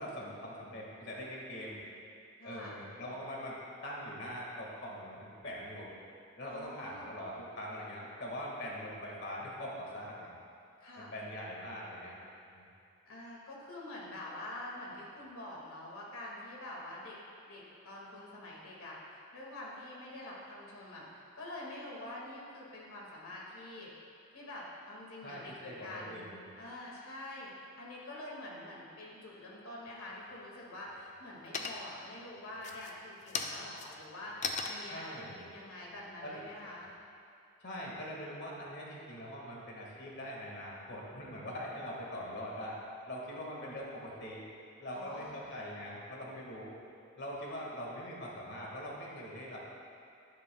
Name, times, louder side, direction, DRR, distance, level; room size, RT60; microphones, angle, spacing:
voice 1, 0.0-1.8 2.4-3.6 3.8-5.9 6.4-10.3 11.0-12.2 12.5-12.7 25.2-26.4 34.9-35.5 36.2-36.5 37.6-42.8 43.1-44.5 44.8-46.7 47.2-49.7, equal, 55° left, -3 dB, 1.9 m, -42 dB
voice 2, 2.4-2.7 6.5-7.2 10.8-11.1 13.1-17.2 17.4-23.9 24.3-26.3 26.6-36.9 44.9-45.4, left 1 dB, 90° left, -4 dB, 2.0 m, -46 dB
sound 1, 29.9-30.5 30.9-31.3 31.5-32.1 32.5-37.0, left 4 dB, 35° left, 0.5 m, -40 dB
11.0 x 10.5 x 2.3 m, 2.5 s
head